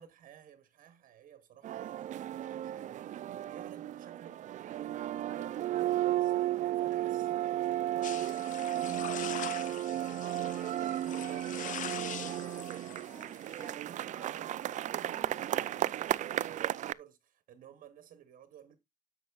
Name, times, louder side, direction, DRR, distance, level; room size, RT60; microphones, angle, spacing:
voice 1, 0.0-18.8, right 9 dB, 85° right, 1.1 m, -54 dB
sound 1, 1.6-16.9, right 13 dB, 65° right, 0.4 m, -34 dB
sound 2, 8.0-13.7, left 9 dB, 70° left, 1.0 m, -43 dB
Wind instrument woodwind instrument, 8.5-16.1, right 1 dB, 10° right, 2.3 m, -55 dB
10.5 x 7.5 x 2.3 m
wide cardioid pair, 160°, 14 cm